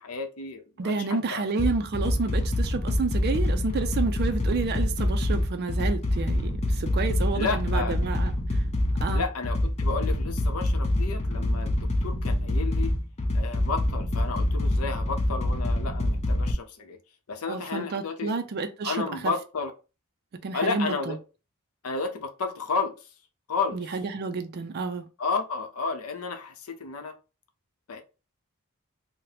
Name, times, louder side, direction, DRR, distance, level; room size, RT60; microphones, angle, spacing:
voice 1, 0.0-1.5 7.3-8.0 9.1-11.7 12.0-12.9 13.3-17.0 17.3-18.3 18.8-19.7 20.5-21.2 21.8-23.1 23.5-23.8 25.2-27.1 27.9-28.0, left 4 dB, 85° left, 0.6 m, -32 dB
voice 2, 0.8-8.3 9.0-9.2 17.5-19.3 20.4-21.2 23.7-25.1, right 4 dB, 45° right, 0.4 m, -30 dB
sound 1, 1.6-16.5, left 1 dB, 30° left, 0.5 m, -26 dB
2.8 x 2.1 x 3.9 m
head